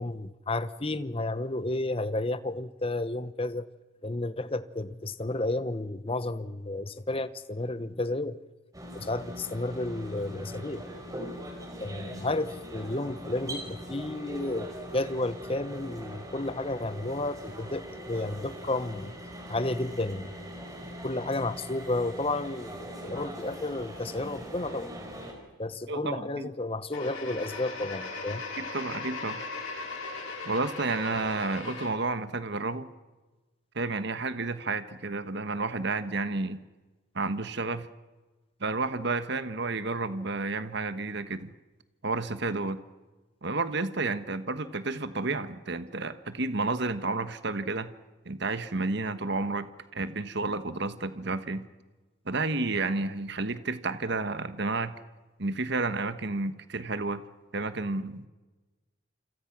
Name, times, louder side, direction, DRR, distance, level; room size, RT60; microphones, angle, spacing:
voice 1, 0.0-3.7 4.0-8.4 8.9-10.8 11.8-19.1 19.5-20.3 21.0-24.9 25.6-28.4, left 2 dB, 25° left, 13 dB, 1.0 m, -32 dB
sound 1, 8.7-25.3, equal, 15° right, 4.8 m, -41 dB
voice 2, 25.9-26.5 28.6-29.4 30.4-32.9 33.7-36.6 37.1-37.9 38.6-41.5 42.0-42.8 43.4-47.9 48.2-51.7 52.3-54.9 55.4-57.2 57.5-58.3, right 3 dB, 55° right, 11 dB, 1.3 m, -31 dB
sound 2, 26.9-31.9, left 3 dB, 80° left, 5.9 m, -38 dB
28.5 x 26.5 x 6.1 m, 1.2 s
head